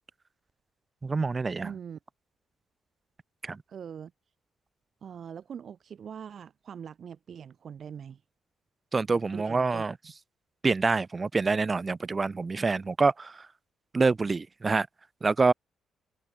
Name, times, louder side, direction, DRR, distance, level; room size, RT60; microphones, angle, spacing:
voice 1, 1.0-1.7 3.4-3.6 8.9-9.9 10.6-13.4 13.9-14.9 15.2-15.5, right 4 dB, 30° right, 0.9 m, -26 dB
voice 2, 1.6-2.0 3.7-4.1 5.0-8.2 9.1-10.1, right 7 dB, 55° right, 3.3 m, -42 dB
cardioid pair, 90°, 0 cm